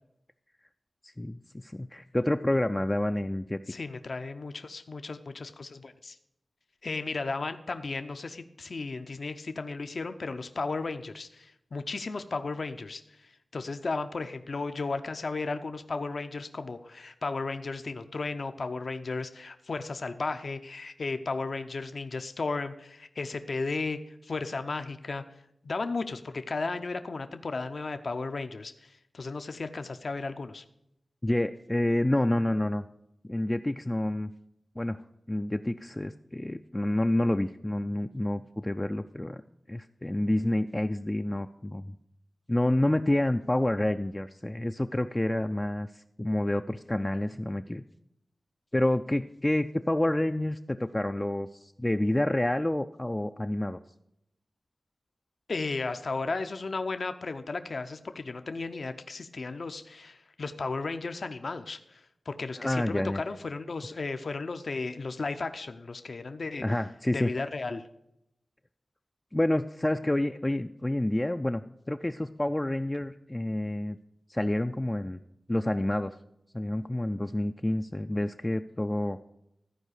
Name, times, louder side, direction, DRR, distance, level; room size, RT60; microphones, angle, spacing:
voice 1, 1.0-3.6 31.2-32.8 33.2-34.3 34.8-35.0 35.3-39.4 39.7-41.9 42.5-47.8 48.7-53.8 62.6-63.2 66.6-67.3 69.3-74.0 74.3-75.2 75.5-76.2 76.5-79.2, left 1 dB, 15° left, 7 dB, 0.3 m, -28 dB
voice 2, 3.7-6.2 6.8-25.2 25.6-30.6 55.5-66.6 67.1-67.8, left 3 dB, 60° left, 9 dB, 0.6 m, -34 dB
13.5 x 4.8 x 6.5 m, 0.81 s
wide cardioid pair, 80°, 0 cm